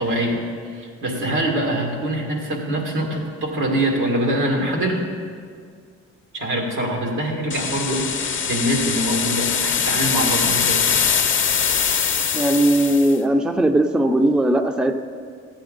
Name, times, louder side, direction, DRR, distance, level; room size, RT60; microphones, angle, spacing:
voice 1, 0.0-5.0 6.3-10.9, right 1 dB, 85° right, -1 dB, 2.1 m, -24 dB
sound 1, 7.5-13.2, left 7 dB, 40° left, 0.8 m, -22 dB
voice 2, 12.3-14.9, right 1 dB, 5° right, 6 dB, 0.5 m, -18 dB
14.5 x 8.5 x 3.9 m, 2.1 s
cardioid pair, 90°, 30 cm